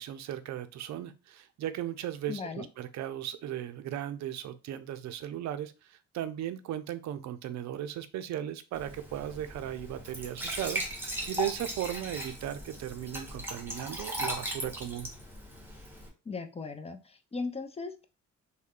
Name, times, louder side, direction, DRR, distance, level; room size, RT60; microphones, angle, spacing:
voice 1, 0.0-15.1, right 11 dB, 65° right, 11 dB, 0.5 m, -37 dB
voice 2, 2.3-2.7 16.3-18.0, left 4 dB, 20° left, 7 dB, 0.5 m, -38 dB
Glass / Trickle dribble / Fill (with liquid), 8.7-16.1, right 1 dB, 5° right, 1.1 m, -38 dB
3.2 x 2.2 x 3.7 m, 0.31 s
cardioid pair, 90°, 30 cm